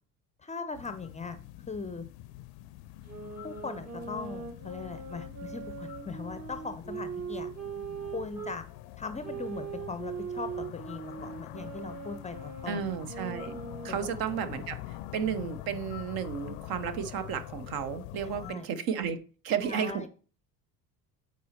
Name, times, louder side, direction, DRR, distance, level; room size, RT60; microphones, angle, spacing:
voice 1, 0.4-1.4 1.7-2.0 3.4-7.5 8.1-8.6 9.0-12.8 13.9-14.1 18.2-18.7 19.6-20.1, left 4 dB, 15° left, 11 dB, 0.6 m, -39 dB
sound 1, 0.7-18.6, left 15 dB, 55° left, 0.6 m, -45 dB
sound 2, 3.1-8.6 9.2-14.8, right 6 dB, 30° right, 1.3 m, -41 dB
voice 2, 12.7-13.6 13.8-19.2 19.4-20.1, right 8 dB, 50° right, 11 dB, 0.9 m, -33 dB
8.5 x 4.2 x 4.3 m, 0.40 s
figure-of-eight pair, 65°, 47 cm